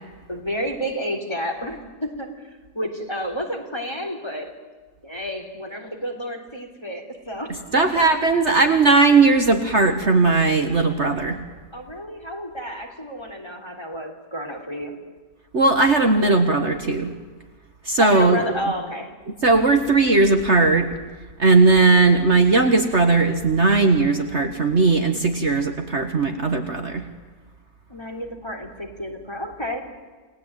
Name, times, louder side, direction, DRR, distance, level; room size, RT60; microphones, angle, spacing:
voice 1, 0.3-2.5 2.7-4.5 5.0-8.1 11.7-14.9 18.0-19.1 27.9-29.9, equal, 15° left, 3 dB, 3.4 m, -30 dB
voice 2, 7.7-11.4 15.5-17.1 17.9-18.4 19.4-20.9 21.4-27.0, right 3 dB, 45° right, 5 dB, 1.8 m, -18 dB
29.0 x 19.0 x 9.1 m, 1.4 s
omnidirectional pair, 1.8 m